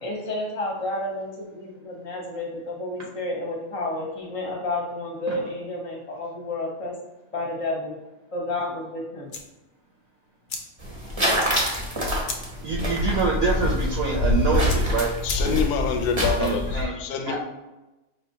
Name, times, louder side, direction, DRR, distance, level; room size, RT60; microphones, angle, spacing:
voice 1, 0.0-7.0 7.3-7.9 8.3-9.3, left 2 dB, 25° left, -1 dB, 0.8 m, -31 dB
sound 1, 9.2-15.9, left 4 dB, 60° left, 0.6 m, -40 dB
sound 2, 10.8-16.8, left 1 dB, 25° right, 0.8 m, -25 dB
voice 2, 12.6-15.1 16.4-16.9 17.2-17.4, right 4 dB, 65° right, -2 dB, 1.0 m, -25 dB
voice 3, 15.2-17.4, left 6 dB, 85° left, 5 dB, 1.1 m, -26 dB
5.2 x 3.0 x 2.7 m, 1.0 s
omnidirectional pair, 1.6 m